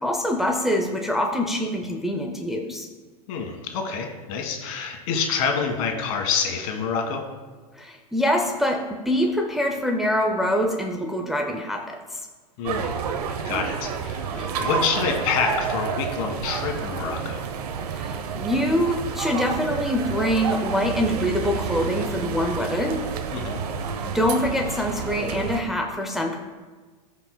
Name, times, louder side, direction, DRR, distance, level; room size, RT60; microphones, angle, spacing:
voice 1, 0.0-2.9 7.8-12.0 17.8-23.0 24.1-26.4, equal, ahead, 1 dB, 0.6 m, -24 dB
voice 2, 3.3-7.2 12.6-13.0 13.4-17.5 23.3-23.6, left 6 dB, 60° left, 3 dB, 1.8 m, -27 dB
sound 1, 12.6-25.6, right 6 dB, 75° right, 0.8 m, -29 dB
15.0 x 5.2 x 2.2 m, 1.4 s
hypercardioid pair, 120°, 20 cm